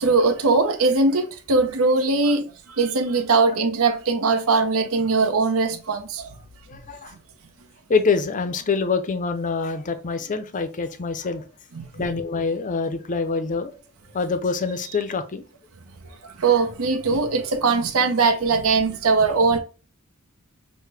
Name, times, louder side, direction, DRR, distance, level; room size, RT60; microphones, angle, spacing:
voice 1, 0.0-6.3 11.8-12.0 16.2-19.6, right 4 dB, 70° right, 0.7 m, -21 dB
voice 2, 6.7-7.1 7.9-11.4 11.9-13.7 14.1-15.4, left 4 dB, 35° left, 0.5 m, -25 dB
6.4 x 2.1 x 3.3 m
head